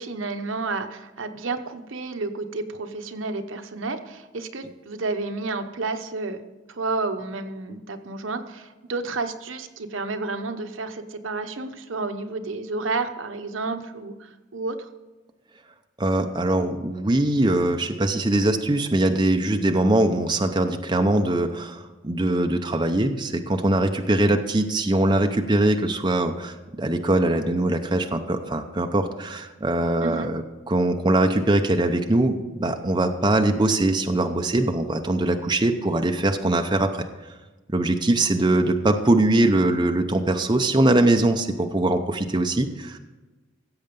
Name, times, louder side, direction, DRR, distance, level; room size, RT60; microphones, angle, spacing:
voice 1, 0.0-6.4 6.7-14.9 30.0-30.3, right 3 dB, 75° right, 7 dB, 0.9 m, -31 dB
voice 2, 16.0-30.4 30.7-37.0 37.7-43.0, right 1 dB, 20° right, 5 dB, 0.7 m, -22 dB
16.0 x 7.7 x 5.3 m, 1.2 s
head